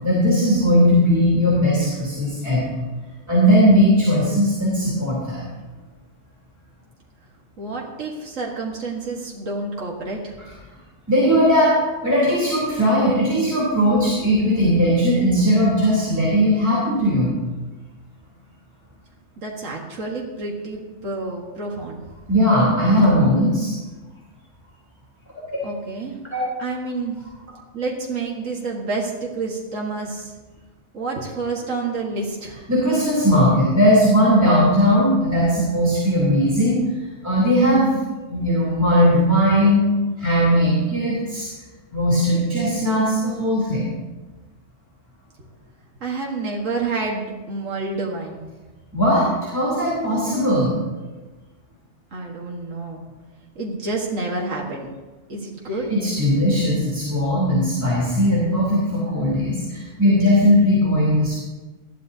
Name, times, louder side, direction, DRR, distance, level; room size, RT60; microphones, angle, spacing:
voice 1, 0.0-2.7 3.3-5.4 11.1-17.3 22.3-23.7 26.3-26.4 32.7-36.8 37.2-37.9 38.3-39.8 40.2-41.5 41.9-43.9 48.9-50.7 55.9-61.3, equal, 15° right, -7 dB, 3.2 m, -18 dB
voice 2, 7.6-10.3 19.4-22.0 25.6-26.2 26.6-27.2 27.7-30.3 30.9-32.6 46.0-48.4 52.1-53.0 53.6-54.9 55.3-55.9, right 3 dB, 90° right, -1 dB, 1.9 m, -29 dB
19.5 x 13.0 x 2.8 m, 1.2 s
omnidirectional pair, 1.3 m